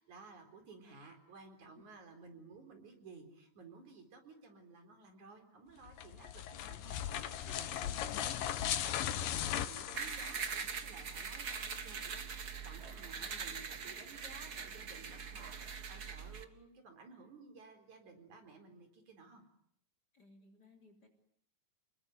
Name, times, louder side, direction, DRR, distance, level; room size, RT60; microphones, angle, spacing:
voice 1, 0.0-19.4, right 4 dB, 60° right, 6 dB, 5.6 m, -56 dB
sound 1, 5.9-10.8, left 10 dB, 85° left, 3.0 m, -38 dB
sound 2, 9.9-16.4, right 6 dB, 40° right, 1.4 m, -42 dB
voice 2, 20.1-21.1, left 3 dB, 30° left, 6 dB, 3.9 m, -62 dB
28.5 x 21.5 x 9.3 m, 0.69 s
omnidirectional pair, 3.8 m